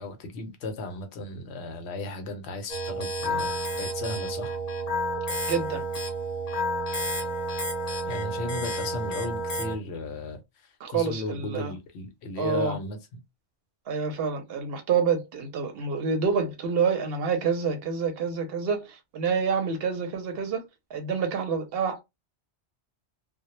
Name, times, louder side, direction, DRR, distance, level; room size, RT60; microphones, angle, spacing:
voice 1, 0.0-4.6 8.0-13.2, left 2 dB, 70° left, 0.9 m, -35 dB
sound 1, 2.7-9.8, right 1 dB, 45° left, 0.6 m, -30 dB
voice 2, 5.5-5.8 10.8-11.7 12.4-12.8 13.9-20.6 20.9-22.0, right 6 dB, 65° right, 0.7 m, -27 dB
2.1 x 2.0 x 2.9 m
omnidirectional pair, 1.2 m